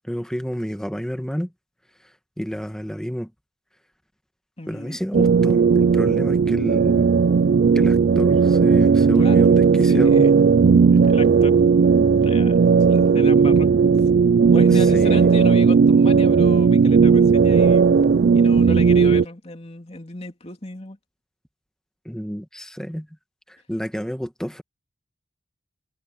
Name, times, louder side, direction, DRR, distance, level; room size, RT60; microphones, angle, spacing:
voice 1, 0.0-1.5 2.4-3.3 4.7-7.1 7.7-10.3 14.7-15.3 22.0-23.1 23.5-24.6, equal, 5° left, 1.7 m, -30 dB
voice 2, 4.6-5.0 9.1-9.4 9.9-10.4 10.9-11.6 12.2-12.6 12.9-13.7 14.5-18.0 18.3-21.0, left 2 dB, 35° left, 3.1 m, -34 dB
sound 1, 5.1-19.2, right 5 dB, 55° right, 0.3 m, -16 dB
head